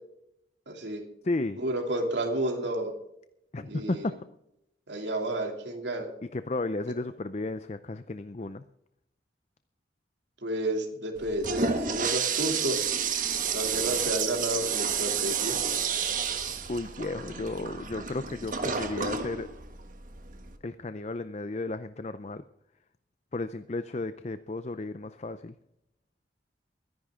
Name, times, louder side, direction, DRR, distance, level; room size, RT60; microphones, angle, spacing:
voice 1, 0.7-1.0 1.6-2.9 3.6-4.1 4.9-6.1 10.4-12.8 13.5-15.5, right 1 dB, 75° right, 2 dB, 2.9 m, -31 dB
voice 2, 1.2-1.6 3.5-4.2 4.9-5.1 6.3-8.6 16.7-19.5 20.6-22.4 23.3-25.5, left 2 dB, 35° left, 12 dB, 0.5 m, -33 dB
Toilet flush, 11.2-20.6, right 6 dB, 45° right, 1.5 m, -30 dB
23.5 x 10.5 x 3.7 m, 0.80 s
head